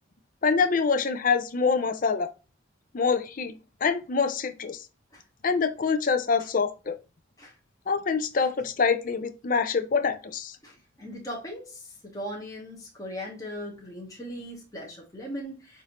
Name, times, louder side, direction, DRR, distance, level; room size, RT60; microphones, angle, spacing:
voice 1, 0.4-2.3 2.9-3.5 3.8-4.8 5.4-7.0 7.9-10.6, left 5 dB, 40° left, 0.4 m, -25 dB
voice 2, 10.6-15.8, equal, 15° left, 1.0 m, -39 dB
6.1 x 2.6 x 2.9 m
head